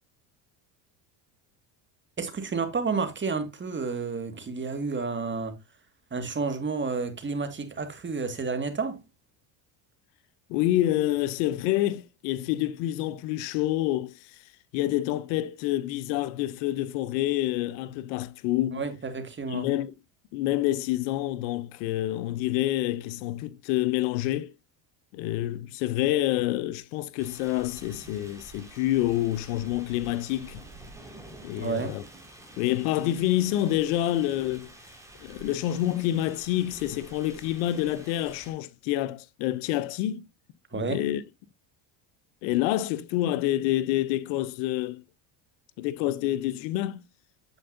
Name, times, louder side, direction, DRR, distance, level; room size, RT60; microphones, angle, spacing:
voice 1, 2.2-5.6 6.1-9.0 18.7-19.7 31.5-31.9 40.7-41.0, right 4 dB, 25° right, 1.9 m, -30 dB
voice 2, 10.5-14.2 14.7-18.8 19.5-19.9 20.3-24.5 25.1-30.6 31.4-32.0 32.6-34.7 35.2-40.3 40.7-41.2 42.4-45.0 45.8-47.0, left 14 dB, 85° left, 0.8 m, -27 dB
sound 1, 27.2-38.5, right 2 dB, 5° right, 4.2 m, -49 dB
9.3 x 7.8 x 2.5 m
supercardioid pair, 105°, 49 cm